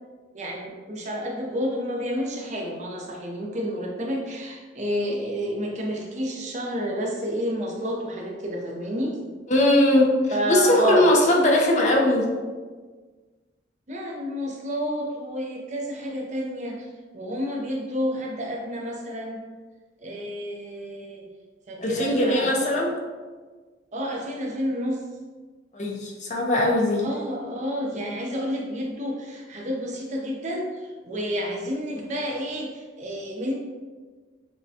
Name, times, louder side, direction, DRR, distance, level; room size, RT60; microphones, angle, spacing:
voice 1, 0.3-9.2 10.3-11.1 13.9-16.9 17.1-19.4 20.0-21.3 21.7-22.7 23.9-25.0 27.0-33.5, equal, 45° right, -1 dB, 0.6 m, -30 dB
voice 2, 9.5-12.2 21.8-22.9 25.7-27.0, left 1 dB, 45° left, -1 dB, 0.7 m, -20 dB
6.1 x 2.2 x 2.7 m, 1.4 s
head